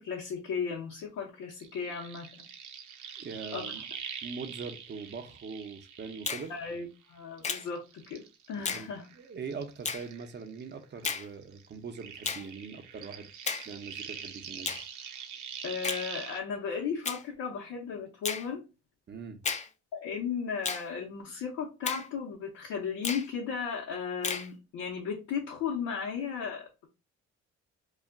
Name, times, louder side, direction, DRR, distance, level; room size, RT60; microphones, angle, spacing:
voice 1, 0.0-2.5 3.5-3.7 6.5-9.1 15.6-18.6 19.9-26.9, left 6 dB, 85° left, 0.8 m, -35 dB
sound 1, 1.5-7.0 7.4-10.7 11.0-16.4, right 8 dB, 80° right, 0.6 m, -44 dB
voice 2, 3.2-3.8 4.2-6.5 8.7-8.9 9.1-13.3 13.6-14.8 19.1-19.4, right 5 dB, 35° right, 0.6 m, -42 dB
Finger snapping, 6.3-6.5 7.4-7.7 8.7-8.9 9.8-10.1 11.0-11.3 12.2-12.5 13.5-13.7 14.7-14.9 15.8-16.1 17.0-17.2 18.2-18.5 19.4-19.7 20.6-20.9 21.9-22.1 23.0-23.3 24.2-24.5, left 5 dB, 25° left, 0.4 m, -33 dB
2.3 x 2.1 x 3.5 m
cardioid pair, 90°, 30 cm